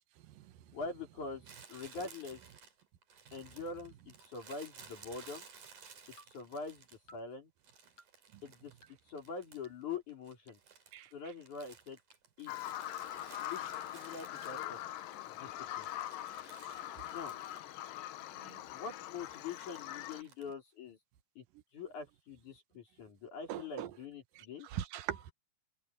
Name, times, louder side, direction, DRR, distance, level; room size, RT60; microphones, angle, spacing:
voice 1, 0.7-2.4 3.3-5.5 6.3-6.9 7.1-7.5 8.4-8.7 9.1-10.6 11.1-12.0 12.4-12.7 13.4-14.8 15.2-15.9 17.1-17.4 18.7-21.0 21.4-21.5 21.7-24.7, left 4 dB, 60° left, 5.6 m, -44 dB
Crumpling crinkling, 1.4-7.2 7.6-9.8 10.1-15.1 15.5-18.0 18.2-18.3 19.2-20.5, right 6 dB, 65° right, 5.3 m, -57 dB
sound 1, 4.2-4.3 5.2-5.3 6.2-6.3 7.1-7.2 8.0-8.1 8.8-8.9 9.6-9.7 10.5-10.6 11.3-11.4 12.1-12.2 12.9-13.0 13.7-13.8 14.4-14.5 14.7-15.9, equal, 45° left, 9.0 m, -60 dB
Bird vocalization bird call bird song, 12.5-20.2, left 13 dB, 85° left, 2.6 m, -43 dB
voice 2, 23.5-23.9 24.4-25.3, right 11 dB, 85° right, 2.7 m, -41 dB
omnidirectional pair, 3.8 m